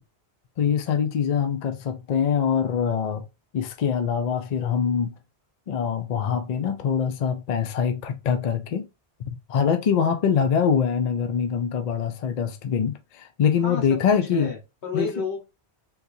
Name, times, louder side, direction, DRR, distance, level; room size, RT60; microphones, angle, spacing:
voice 1, 0.6-3.3 3.5-5.1 5.7-8.9 9.5-14.5 14.9-15.1, left 7 dB, 50° left, 0.5 m, -24 dB
voice 2, 13.6-15.4, left 4 dB, 90° left, 1.6 m, -31 dB
3.7 x 2.8 x 2.6 m
omnidirectional pair, 1.1 m